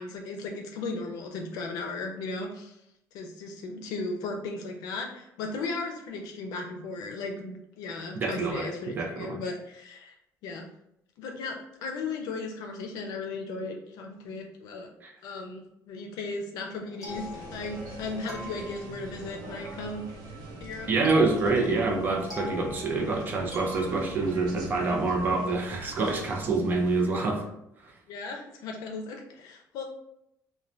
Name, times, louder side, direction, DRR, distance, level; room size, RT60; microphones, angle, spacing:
voice 1, 0.0-2.8 3.1-10.1 10.4-10.7 11.2-11.6 11.8-14.9 15.2-17.2 17.5-20.0 20.6-20.9 28.1-29.8, left 3 dB, 85° left, 2 dB, 0.5 m, -36 dB
voice 2, 8.2-9.4 15.0-15.1 20.9-27.5 27.8-27.9, right 3 dB, 30° right, 1 dB, 0.5 m, -27 dB
sound 1, 16.8-18.0 18.3-19.2 21.0-24.5, equal, 5° right, 0.8 m, -42 dB
sound 2, 17.1-27.0, right 2 dB, 80° right, 1.0 m, -42 dB
2.5 x 2.1 x 3.1 m, 0.79 s
cardioid pair, 170°, 6 cm